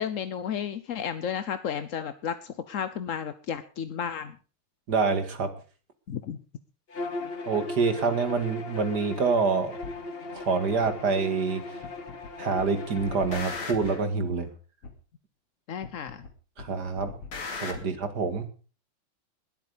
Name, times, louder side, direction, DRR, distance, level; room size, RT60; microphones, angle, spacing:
voice 1, 0.0-4.4 6.1-6.4 15.7-16.2, left 8 dB, 60° left, 12 dB, 0.8 m, -33 dB
voice 2, 4.9-5.5 7.5-9.8 10.3-11.8 12.4-14.5 16.6-17.1 17.6-18.5, right 4 dB, 50° right, 9 dB, 2.4 m, -26 dB
Bowed string instrument, 6.9-13.6, left 3 dB, 35° left, 1.2 m, -38 dB
sound 1, 9.8-10.0 10.8-10.9 11.8-12.3 12.6-14.1 14.8-14.9 15.8-16.3 16.6-17.8, left 4 dB, 85° left, 3.4 m, -38 dB
20.5 x 8.6 x 5.1 m, 0.37 s
omnidirectional pair, 2.3 m